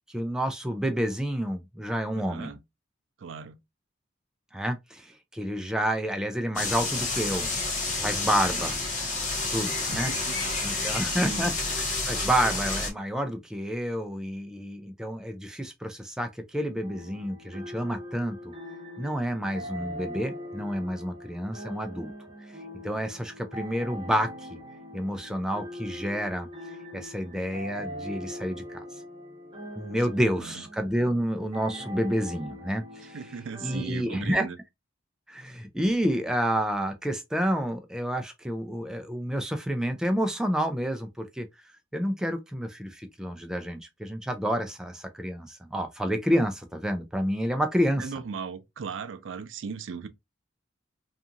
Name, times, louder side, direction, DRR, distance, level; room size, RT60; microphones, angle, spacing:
voice 1, 0.1-2.6 4.5-7.5 8.0-8.8 9.5-10.1 10.6-18.5 19.0-22.1 22.8-24.6 24.9-26.5 26.9-28.8 29.8-33.2 33.6-34.5 35.3-41.5 41.9-48.1, equal, 5° right, 0.3 m, -29 dB
voice 2, 2.1-2.6 3.2-3.6 8.3-8.7 9.9-11.5 30.4-30.6 33.1-34.6 48.0-50.1, right 5 dB, 90° right, 0.4 m, -38 dB
sound 1, 6.6-12.9, left 3 dB, 45° left, 1.2 m, -29 dB
sound 2, 16.8-33.8, equal, 30° right, 1.0 m, -42 dB
2.8 x 2.4 x 2.5 m
head